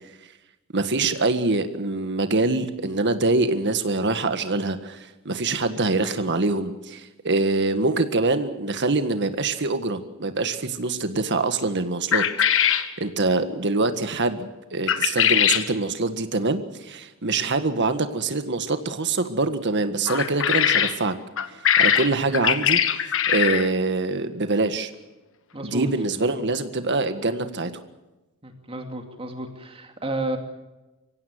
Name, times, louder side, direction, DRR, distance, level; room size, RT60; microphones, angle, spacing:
voice 1, 0.7-12.2 12.5-21.1 21.5-22.8 23.3-24.9 25.6-27.7, right 3 dB, 55° right, 9 dB, 1.7 m, -24 dB
sound 1, 12.1-12.9 14.9-15.7 20.1-21.0 21.4-23.7, left 9 dB, 65° left, 1.4 m, -21 dB
voice 2, 25.5-25.9 28.4-30.4, right 2 dB, 25° right, 4 dB, 2.5 m, -31 dB
24.0 x 16.5 x 9.6 m, 1.1 s
head